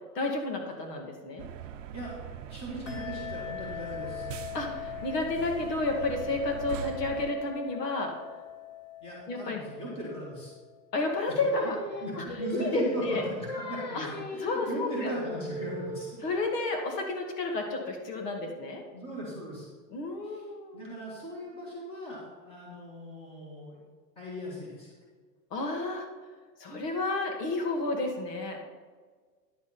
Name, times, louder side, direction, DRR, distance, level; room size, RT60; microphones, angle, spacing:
voice 1, 0.1-1.4 4.5-8.1 9.3-9.6 10.9-11.8 12.2-12.3 12.5-13.3 13.9-14.1 14.4-15.1 16.2-18.8 19.9-20.8 25.5-26.1 26.6-28.6, left 2 dB, 70° left, 2 dB, 2.2 m, -31 dB
sound 1, 1.4-7.3, right 9 dB, 50° right, 0.7 m, -42 dB
voice 2, 2.5-4.3 9.0-10.5 12.0-16.1 18.5-18.6 18.9-19.7 20.2-20.4 20.7-23.8 24.2-24.9, right 1 dB, 10° left, -5 dB, 2.0 m, -38 dB
sound 2, 2.9-11.0, left 12 dB, 45° left, 1.2 m, -42 dB
Singing, 11.1-16.3, left 1 dB, 30° left, 0.4 m, -38 dB
10.0 x 7.3 x 4.3 m, 1.5 s
supercardioid pair, 170°, 50 cm